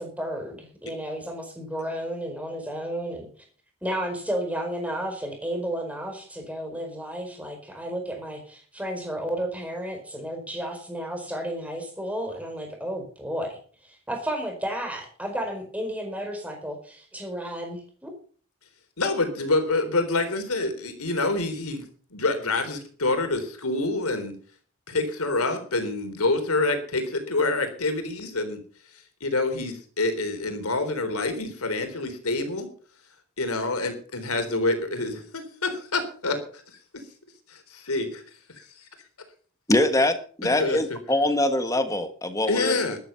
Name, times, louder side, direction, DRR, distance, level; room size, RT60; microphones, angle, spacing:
voice 1, 0.0-3.3 3.8-18.1, right 1 dB, 5° right, 3 dB, 4.8 m, -32 dB
voice 2, 19.0-21.9 22.1-24.3 24.9-28.6 29.2-32.7 33.4-36.4 37.5-38.2 40.6-40.8 42.5-43.0, left 2 dB, 90° left, 8 dB, 3.9 m, -26 dB
voice 3, 39.7-42.8, left 1 dB, 15° left, 9 dB, 1.4 m, -23 dB
13.0 x 12.0 x 5.7 m, 0.43 s
head